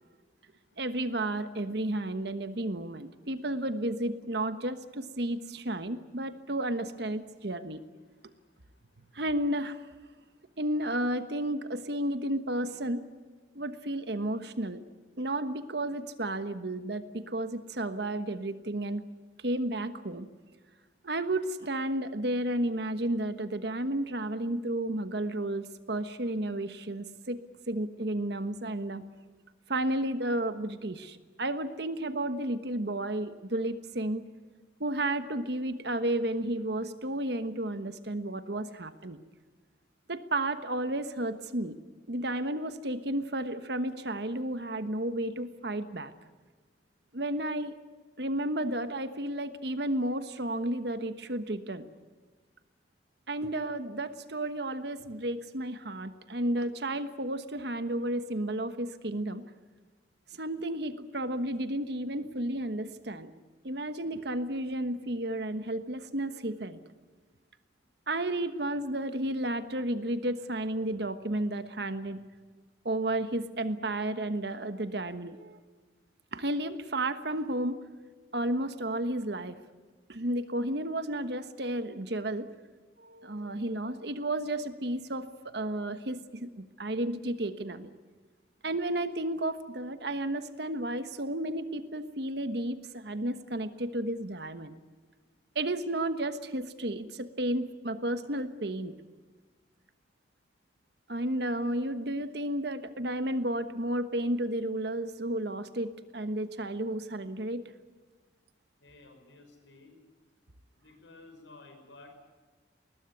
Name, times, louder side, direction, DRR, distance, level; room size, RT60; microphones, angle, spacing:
voice 1, 0.8-7.8 9.1-9.9 10.6-13.1 13.5-14.8 15.2-19.0 19.4-20.3 21.0-27.4 27.7-29.0 29.7-34.3 34.8-39.2 40.1-41.8 42.1-46.1 47.1-47.7 48.2-51.9 53.3-59.4 60.3-63.3 63.6-66.8 68.1-72.2 72.8-75.6 76.3-77.8 78.3-79.6 80.1-82.5 83.0-87.9 88.6-94.8 95.5-98.9 101.1-107.6, right 1 dB, 60° right, 11 dB, 1.3 m, -32 dB
voice 2, 108.8-110.0 110.8-112.1, left 2 dB, 80° left, 4 dB, 5.7 m, -53 dB
21.0 x 20.0 x 9.8 m, 1.4 s
head